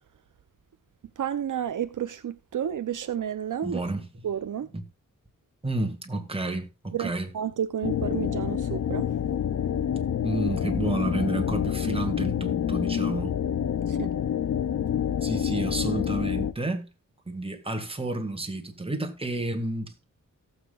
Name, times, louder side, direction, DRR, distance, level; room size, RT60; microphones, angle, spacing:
voice 1, 1.2-3.8 4.2-4.7 6.9-9.1 13.9-14.1, right 9 dB, 70° right, 0.7 m, -31 dB
voice 2, 3.6-4.1 4.7-4.8 5.6-7.3 10.2-13.3 15.2-16.9 17.3-20.1, right 2 dB, 15° right, 2.1 m, -30 dB
sound 1, 7.8-16.5, left 9 dB, 55° left, 0.6 m, -27 dB
17.5 x 7.5 x 2.4 m
wide cardioid pair, 100°, 32 cm